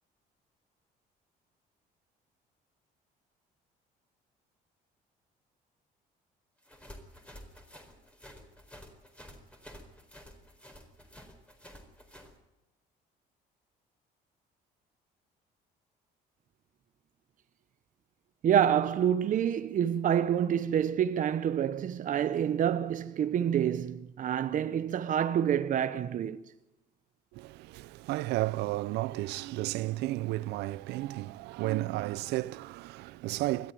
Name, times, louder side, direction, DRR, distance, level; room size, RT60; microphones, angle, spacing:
sound 1, 6.6-12.3, equal, 5° left, 4.3 m, -51 dB
voice 1, 18.4-26.4, right 9 dB, 50° right, 0.9 m, -27 dB
voice 2, 27.3-33.7, right 18 dB, 85° right, 0.7 m, -33 dB
20.5 x 13.5 x 9.3 m
cardioid pair, 110°, 17 cm